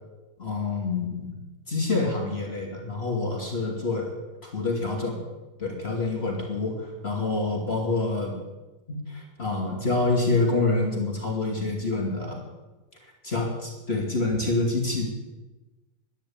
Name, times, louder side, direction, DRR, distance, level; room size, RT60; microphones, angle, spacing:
voice 1, 0.4-1.4 1.7-5.2 5.6-8.4 8.9-12.5 13.0-15.1, left 3 dB, 20° left, -1 dB, 2.3 m, -27 dB
12.0 x 10.5 x 8.6 m, 1.1 s
omnidirectional pair, 3.6 m